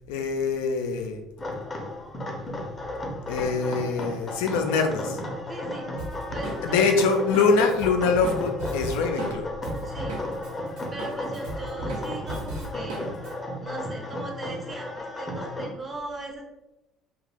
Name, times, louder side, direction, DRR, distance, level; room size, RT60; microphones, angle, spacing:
voice 1, 0.1-1.2 3.3-5.2 6.6-9.5, left 4 dB, 80° left, 5 dB, 0.4 m, -24 dB
sound 1, 1.4-15.7, left 1 dB, 30° left, 0.6 m, -34 dB
voice 2, 5.5-5.9 6.3-7.0 9.8-10.2 10.9-13.1 13.6-16.4, right 2 dB, 30° right, 2 dB, 0.7 m, -38 dB
Drum kit, 6.0-10.5 10.8-13.3, right 2 dB, 85° right, 0.9 m, -35 dB
2.4 x 2.3 x 3.4 m, 0.98 s
hypercardioid pair, 70°, 0 cm